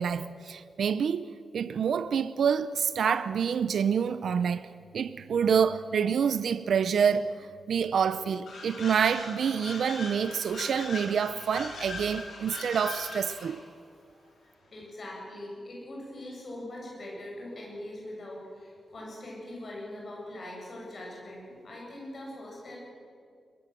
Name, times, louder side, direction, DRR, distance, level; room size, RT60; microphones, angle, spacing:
voice 1, 0.0-13.6, right 7 dB, 75° right, 0.6 m, -27 dB
sound 1, 8.5-13.6, left 3 dB, 70° left, 5.1 m, -41 dB
voice 2, 14.4-22.8, left 1 dB, 40° left, 8.0 m, -42 dB
22.0 x 21.5 x 7.6 m
wide cardioid pair, 180°, 0 cm